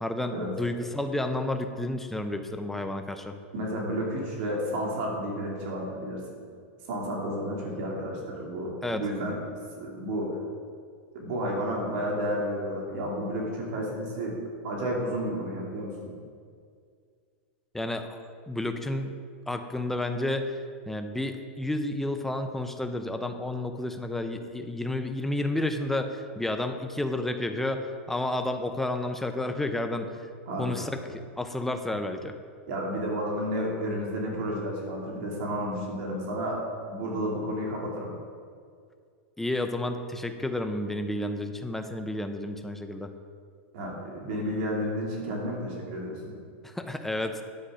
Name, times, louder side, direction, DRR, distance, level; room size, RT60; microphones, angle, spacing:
voice 1, 0.0-3.4 8.8-9.0 17.7-19.1 19.5-20.5 20.9-30.1 30.6-32.3 39.4-43.1 46.6-47.4, left 1 dB, 5° left, 6 dB, 0.7 m, -31 dB
voice 2, 3.5-6.2 6.9-9.4 9.7-10.4 11.1-14.4 14.6-16.1 30.5-30.9 32.7-38.1 43.7-46.3, equal, 60° right, -2 dB, 2.8 m, -31 dB
10.0 x 8.3 x 5.1 m, 2.1 s
supercardioid pair, 135°, 6 cm